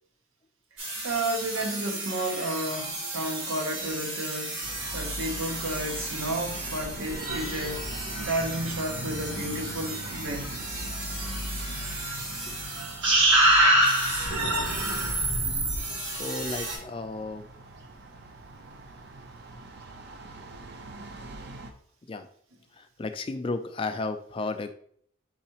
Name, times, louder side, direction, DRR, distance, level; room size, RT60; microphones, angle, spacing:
sound 1, 0.8-16.8, right 1 dB, 65° right, 1.8 m, -28 dB
voice 1, 1.0-4.6 4.9-7.9 8.2-10.9, right 1 dB, 85° right, 0.9 m, -32 dB
sound 2, 4.6-21.7, right 1 dB, 50° right, 0.5 m, -42 dB
voice 2, 15.4-17.5 22.1-22.3 22.7-24.7, left 3 dB, 25° left, 0.3 m, -34 dB
4.6 x 4.0 x 2.9 m
head